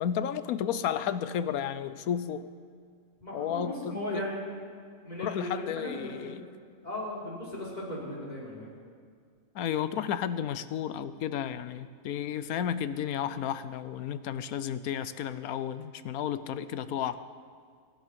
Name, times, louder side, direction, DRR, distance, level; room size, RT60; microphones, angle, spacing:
voice 1, 0.0-2.5 3.3-4.3 5.2-6.4 9.5-17.2, left 9 dB, 80° left, 13 dB, 1.2 m, -32 dB
voice 2, 3.2-4.4 5.0-6.3 6.8-8.7, left 1 dB, 30° left, -6 dB, 4.4 m, -36 dB
23.0 x 11.0 x 5.3 m, 2.1 s
omnidirectional pair, 1.5 m